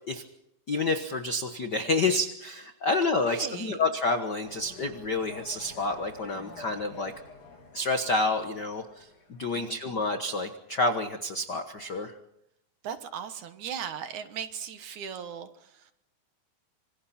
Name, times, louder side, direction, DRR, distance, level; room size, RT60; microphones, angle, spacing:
voice 1, 0.7-7.1 7.7-9.1 9.4-12.1, left 2 dB, 65° left, 1.0 m, -29 dB
voice 2, 3.2-3.8 9.6-9.8 12.8-15.8, right 8 dB, 65° right, 2.5 m, -38 dB
sound 1, 4.4-9.6, left 3 dB, 45° left, 7.3 m, -49 dB
27.0 x 26.0 x 4.3 m
omnidirectional pair, 4.1 m